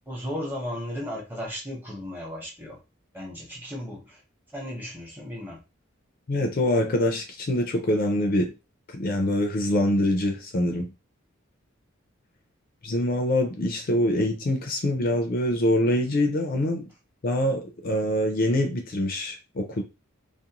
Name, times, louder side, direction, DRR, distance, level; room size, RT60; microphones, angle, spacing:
voice 1, 0.1-2.8 3.1-4.2 4.5-5.6, equal, 10° right, 0.9 m, -35 dB
voice 2, 6.3-8.5 8.9-10.9 12.8-16.9 17.2-19.8, left 1 dB, 45° left, 0.4 m, -24 dB
2.5 x 2.1 x 2.9 m
head